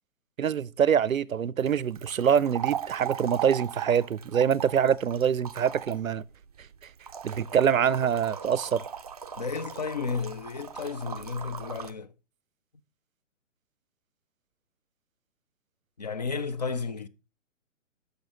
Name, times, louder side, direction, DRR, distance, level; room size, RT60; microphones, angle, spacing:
voice 1, 0.4-6.2 7.2-8.8, right 8 dB, 85° right, 0.5 m, -25 dB
sound 1, 1.6-11.9, right 9 dB, 30° right, 0.4 m, -39 dB
voice 2, 9.4-12.1 16.0-17.1, left 5 dB, 35° left, 0.4 m, -32 dB
9.4 x 6.4 x 2.9 m
figure-of-eight pair, 125°, 40 cm